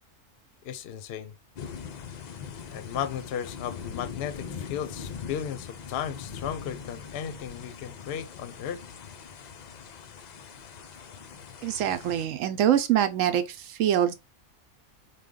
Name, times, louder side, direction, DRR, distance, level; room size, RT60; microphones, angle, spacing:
voice 1, 0.6-1.3 2.7-8.8, left 9 dB, 60° left, 0.7 m, -35 dB
sound 1, 1.6-12.3, left 7 dB, 75° left, 0.4 m, -41 dB
voice 2, 11.6-13.4 13.7-14.1, right 10 dB, 75° right, 1.0 m, -24 dB
4.9 x 2.3 x 3.6 m
omnidirectional pair, 1.4 m